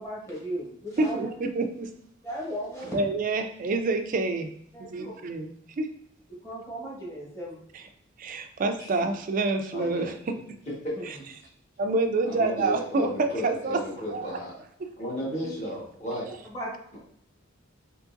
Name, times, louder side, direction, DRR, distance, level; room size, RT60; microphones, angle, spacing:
voice 1, 0.0-1.3 2.2-2.9 4.7-5.1 6.3-7.6 11.0-11.1 16.4-16.7, equal, 15° left, -6 dB, 1.1 m, -36 dB
voice 2, 1.0-1.9 2.9-4.5 4.8-5.9 7.7-7.8 8.2-10.4 11.8-13.8 14.1-14.3 14.8-14.9 15.4-15.5, right 3 dB, 40° right, 7 dB, 0.3 m, -27 dB
voice 3, 9.7-10.1 10.8-10.9 12.2-14.5 15.0-16.3, equal, 35° left, -6 dB, 1.3 m, -33 dB
3.7 x 2.9 x 2.5 m, 0.67 s
head